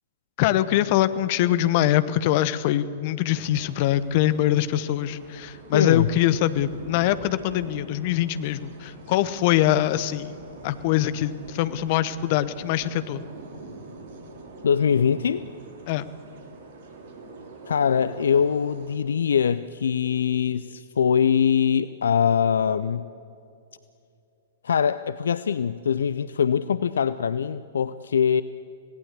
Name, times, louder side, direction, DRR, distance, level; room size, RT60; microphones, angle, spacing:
voice 1, 0.4-10.4 10.6-13.2 15.9-16.1, left 13 dB, 45° left, 14 dB, 1.0 m, -23 dB
sound 1, 3.3-19.0, right 3 dB, 50° right, 3.2 m, -44 dB
voice 2, 5.7-6.1 14.6-15.4 17.7-23.1 24.6-28.4, left 7 dB, 65° left, 14 dB, 0.5 m, -22 dB
26.0 x 18.0 x 8.4 m, 2.6 s
figure-of-eight pair, 105°, 0 cm